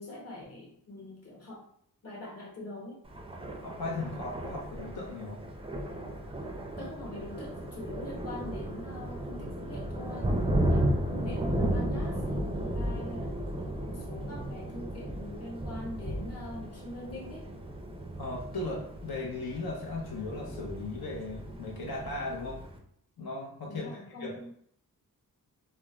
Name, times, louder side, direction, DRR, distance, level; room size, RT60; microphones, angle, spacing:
voice 1, 0.0-1.7 2.0-3.0 6.8-13.4 13.8-17.5 23.7-24.5, left 2 dB, 40° left, -4 dB, 1.0 m, -43 dB
Thunder, 3.0-22.8, right 1 dB, 15° right, 0.4 m, -34 dB
voice 2, 3.6-5.4 18.2-22.6 23.2-23.9 24.2-24.3, left 2 dB, 75° left, -2 dB, 0.7 m, -37 dB
2.4 x 2.1 x 3.0 m, 0.67 s
wide cardioid pair, 75°, 37 cm